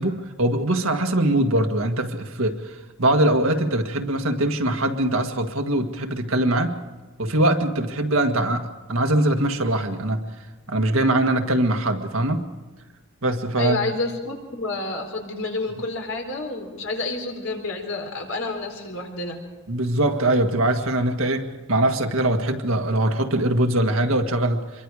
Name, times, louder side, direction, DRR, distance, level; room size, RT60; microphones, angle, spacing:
voice 1, 0.0-6.8 7.2-10.2 10.7-12.5 13.2-13.9 19.7-24.6, right 1 dB, 75° right, 4 dB, 1.8 m, -22 dB
voice 2, 13.6-19.4, left 2 dB, 70° left, 3 dB, 4.2 m, -29 dB
26.5 x 23.0 x 4.9 m, 1.2 s
head